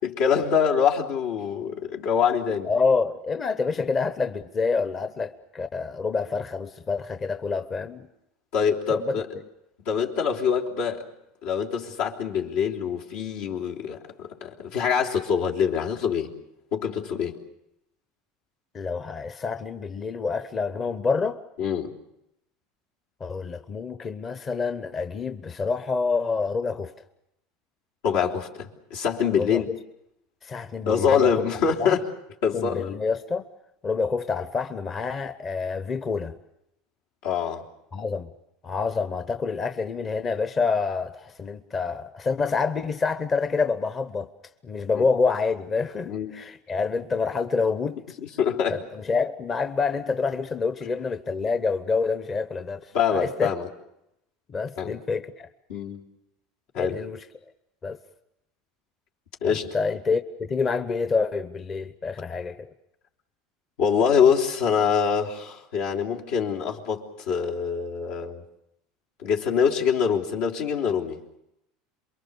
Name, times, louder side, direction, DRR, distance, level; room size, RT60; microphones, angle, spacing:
voice 1, 0.0-2.7 8.5-9.3 9.8-11.0 11.4-16.3 16.7-17.4 21.6-21.9 28.0-29.7 30.8-32.1 32.4-32.9 37.2-37.6 44.9-45.1 46.1-46.3 48.4-48.8 52.9-53.7 54.8-55.0 55.7-56.0 56.7-57.0 59.4-59.7 63.8-68.4 69.2-71.2, left 7 dB, 80° left, 3.4 m, -24 dB
voice 2, 2.7-8.1 8.9-9.1 18.7-21.4 23.2-26.9 29.4-29.6 30.4-31.3 31.8-31.9 32.5-33.4 33.8-36.4 37.9-38.3 38.6-44.3 44.6-48.0 48.7-53.5 54.5-55.5 56.8-57.2 57.8-58.0 59.5-62.7, left 4 dB, 30° left, 0.9 m, -27 dB
28.0 x 23.0 x 7.0 m
supercardioid pair, 115°, 0 cm